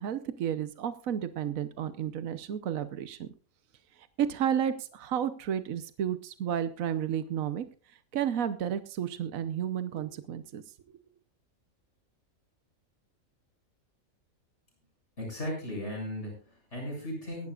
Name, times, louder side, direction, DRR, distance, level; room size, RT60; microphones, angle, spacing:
voice 1, 0.0-3.3 4.2-7.6 8.1-10.6 10.9-11.0, right 9 dB, 75° right, 11 dB, 1.3 m, -32 dB
voice 2, 15.2-17.5, left 1 dB, 55° left, 0 dB, 7.6 m, -36 dB
23.5 x 11.5 x 2.4 m, 0.35 s
omnidirectional pair, 1.4 m